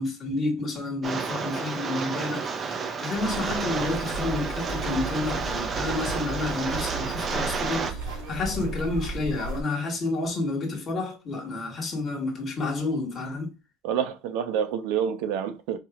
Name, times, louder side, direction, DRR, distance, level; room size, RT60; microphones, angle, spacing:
voice 1, 0.0-13.5, left 2 dB, 25° left, 1.6 m, -30 dB
Rain, 1.0-7.9, right 5 dB, 25° right, 0.6 m, -31 dB
sound 1, 3.1-9.6, right 2 dB, 85° right, 1.6 m, -35 dB
voice 2, 13.8-15.8, right 8 dB, 70° right, 0.7 m, -28 dB
4.7 x 2.9 x 2.4 m
cardioid pair, 140°, 0 cm